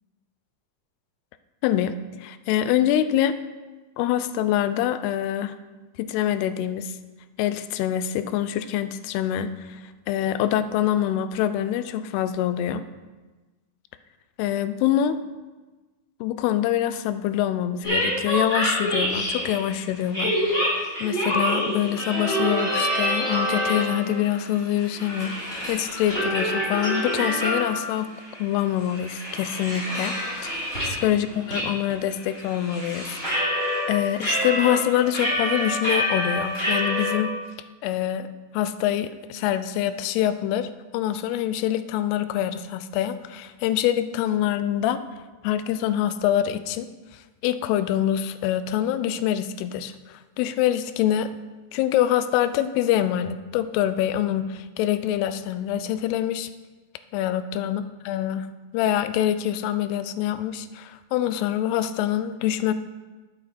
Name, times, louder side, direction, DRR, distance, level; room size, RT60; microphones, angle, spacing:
voice 1, 1.6-3.4 4.0-5.6 6.0-7.0 7.4-9.8 10.1-12.8 14.4-15.2 16.2-28.1 28.4-33.1 33.4-33.5 33.9-37.3 37.8-38.3 38.5-45.0 45.4-51.3 51.7-56.5 57.1-58.5 58.7-62.7, left 11 dB, 90° left, 12 dB, 2.6 m, -25 dB
sound 1, 17.8-19.7 20.1-24.1 24.5-27.9 28.3-28.4 28.8-31.0 31.5-31.6 31.9-33.8 34.2-37.1, equal, 15° left, 3.0 m, -26 dB
11.0 x 6.7 x 4.1 m, 1.2 s
omnidirectional pair, 4.6 m